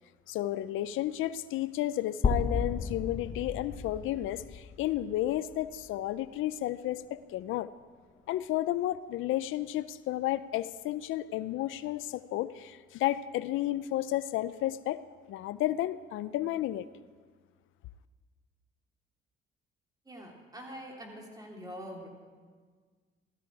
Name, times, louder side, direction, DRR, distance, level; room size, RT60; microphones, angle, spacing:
voice 1, 0.3-7.7 8.3-15.0 15.3-16.9, left 14 dB, 85° left, 15 dB, 0.5 m, -32 dB
sound 1, 2.2-6.2, left 4 dB, 35° left, 0.9 m, -34 dB
voice 2, 20.0-22.1, equal, 20° right, 0 dB, 3.3 m, -44 dB
16.0 x 14.0 x 4.8 m, 1.5 s
cardioid pair, 90°, 20 cm